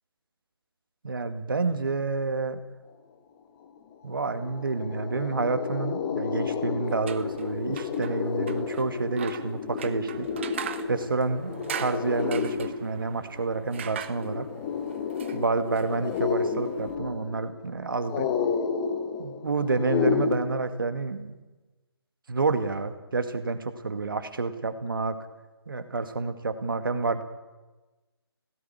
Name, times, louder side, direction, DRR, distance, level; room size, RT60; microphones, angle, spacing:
voice 1, 1.0-2.6 4.0-10.3 10.9-14.5 15.3-18.3 19.2-21.4 22.3-25.2 25.7-27.2, right 3 dB, 55° right, 9 dB, 2.0 m, -29 dB
sound 1, 3.8-3.9 4.1-20.3, left 6 dB, 15° left, 1.3 m, -31 dB
sound 2, 6.9-17.0, right 8 dB, 25° right, 1.0 m, -42 dB
17.5 x 17.5 x 9.7 m, 1.2 s
figure-of-eight pair, 150°, 14 cm